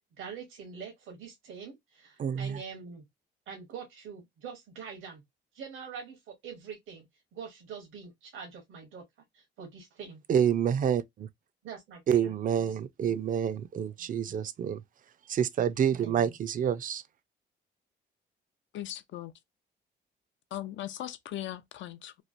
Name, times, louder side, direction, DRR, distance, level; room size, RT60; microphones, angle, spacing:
voice 1, 0.2-3.0 3.5-5.2 5.5-7.1 7.3-9.0 9.3-10.2 11.6-12.8 13.1-13.2 14.2-14.4 16.0-16.3, right 6 dB, 85° right, 1.1 m, -44 dB
voice 2, 2.2-2.6 10.3-11.0 12.1-14.8 15.3-17.0, right 8 dB, 45° right, 0.4 m, -27 dB
voice 3, 18.7-19.3 20.5-22.2, left 13 dB, 70° left, 0.5 m, -39 dB
3.1 x 2.3 x 2.5 m
cardioid pair, 90°, 20 cm